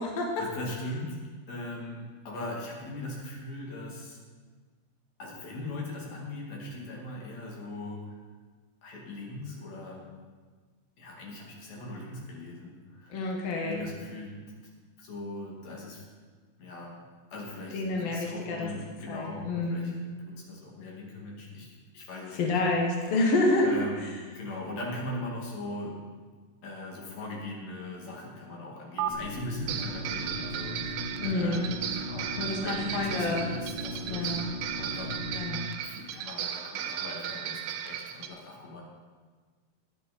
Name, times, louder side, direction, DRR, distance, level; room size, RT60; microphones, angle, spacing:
voice 1, 0.4-4.2 5.2-8.2 8.8-10.1 11.0-13.2 13.6-14.4 15.0-16.0 16.6-17.0 17.3-22.6 23.6-26.0 26.6-34.4 34.8-35.5 35.8-38.8, left 2 dB, 45° left, -3 dB, 3.0 m, -40 dB
voice 2, 13.1-13.8 17.7-18.7 19.1-19.9 22.3-23.8 31.2-31.7 32.4-33.5 34.1-34.5 35.3-35.7, left 2 dB, 80° left, 0 dB, 1.4 m, -28 dB
sound 1, 29.0-29.1 29.7-38.3, right 10 dB, 80° right, 2.5 m, -36 dB
sound 2, 29.1-35.5, left 1 dB, 60° right, 6.9 m, -38 dB
15.5 x 9.9 x 4.3 m, 1.5 s
omnidirectional pair, 5.4 m